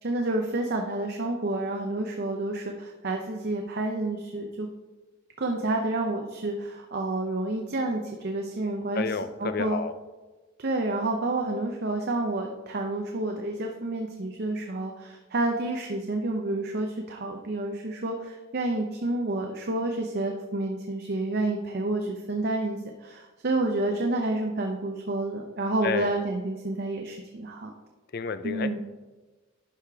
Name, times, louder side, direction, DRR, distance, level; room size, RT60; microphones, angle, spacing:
voice 1, 0.0-4.7 5.4-9.8 10.6-27.7 28.4-28.8, right 2 dB, 50° right, 2 dB, 0.6 m, -29 dB
voice 2, 9.0-9.9 25.8-26.1 28.1-28.7, left 5 dB, 50° left, 12 dB, 0.4 m, -30 dB
11.5 x 4.9 x 3.5 m, 1.2 s
head